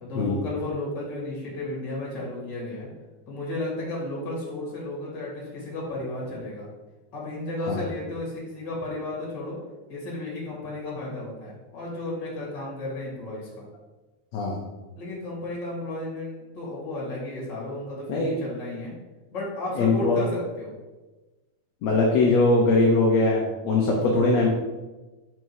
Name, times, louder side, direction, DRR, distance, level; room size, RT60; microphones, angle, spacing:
voice 1, 0.0-2.9 3.3-6.7 7.1-9.6 9.9-13.6 15.0-18.9 19.3-20.7 24.0-24.2, left 2 dB, 40° left, -4 dB, 2.6 m, -33 dB
voice 2, 19.8-20.2 21.8-24.5, left 3 dB, 70° left, -1 dB, 1.8 m, -21 dB
5.4 x 5.2 x 4.7 m, 1.2 s
omnidirectional pair, 3.5 m